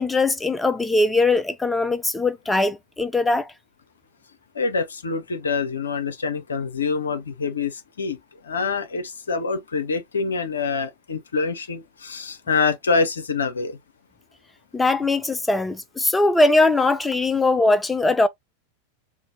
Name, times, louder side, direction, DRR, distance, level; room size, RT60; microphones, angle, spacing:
voice 1, 0.0-3.5 14.7-18.3, left 2 dB, 10° left, 0.3 m, -20 dB
voice 2, 4.5-13.8, left 4 dB, 70° left, 0.6 m, -26 dB
3.8 x 2.1 x 2.7 m
figure-of-eight pair, 90°, 0 cm